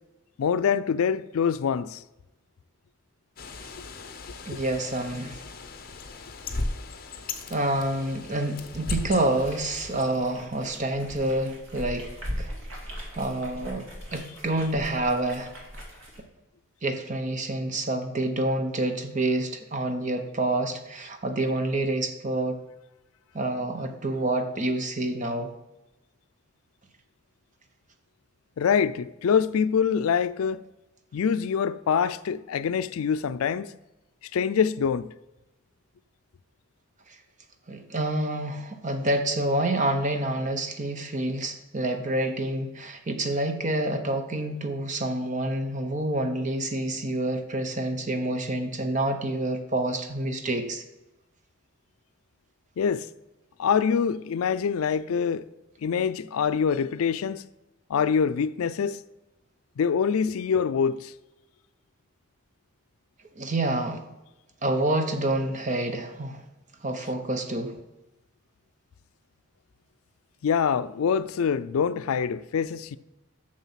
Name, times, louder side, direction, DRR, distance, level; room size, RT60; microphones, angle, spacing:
voice 1, 0.4-2.0 4.5-4.6 28.6-30.6 31.1-33.7 34.3-35.1 52.8-53.1 53.6-55.5 55.8-57.4 57.9-59.0 59.8-61.1 70.4-73.0, left 6 dB, 85° left, 0.4 m, -25 dB
Bird, 3.4-10.0, left 3 dB, 45° left, 0.8 m, -37 dB
voice 2, 4.5-5.4 7.5-12.1 12.4-12.5 13.2-15.5 16.8-22.6 23.3-25.5 37.7-50.8 63.4-64.0 64.6-66.4 66.8-67.8, right 1 dB, 35° right, 0.8 m, -28 dB
sound 1, 9.3-16.2, equal, 70° right, 2.3 m, -40 dB
7.2 x 6.5 x 5.7 m
head